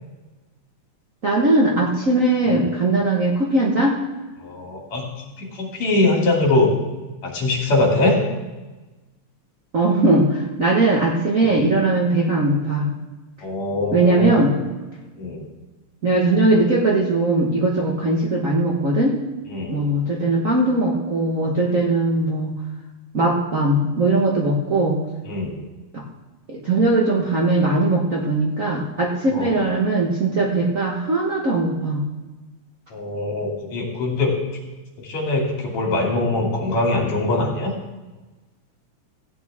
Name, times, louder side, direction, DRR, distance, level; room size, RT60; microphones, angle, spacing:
voice 1, 1.2-3.9 9.7-12.9 13.9-14.5 16.0-19.2 19.7-22.5 23.1-25.0 25.9-26.0 26.5-32.0, right 2 dB, 65° right, -3 dB, 0.7 m, -19 dB
voice 2, 4.4-5.1 5.4-6.7 7.2-8.2 11.5-11.6 13.4-14.5 15.2-15.4 19.5-19.8 25.3-25.6 29.3-29.6 32.9-34.4 35.0-37.7, left 2 dB, 60° left, -2 dB, 3.5 m, -22 dB
15.5 x 9.4 x 3.6 m, 1.2 s
omnidirectional pair, 3.5 m